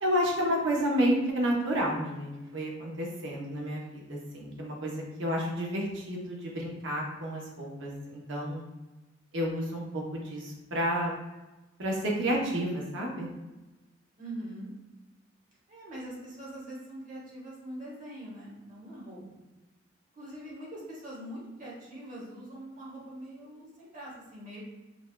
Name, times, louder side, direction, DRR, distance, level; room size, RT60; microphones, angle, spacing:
voice 1, 0.0-8.6 9.3-11.1 11.8-13.3, equal, 70° right, -2 dB, 0.9 m, -30 dB
voice 2, 14.2-14.8 15.7-19.2 20.2-24.6, right 1 dB, 40° right, -6 dB, 1.1 m, -43 dB
5.1 x 2.3 x 2.3 m, 1.1 s
head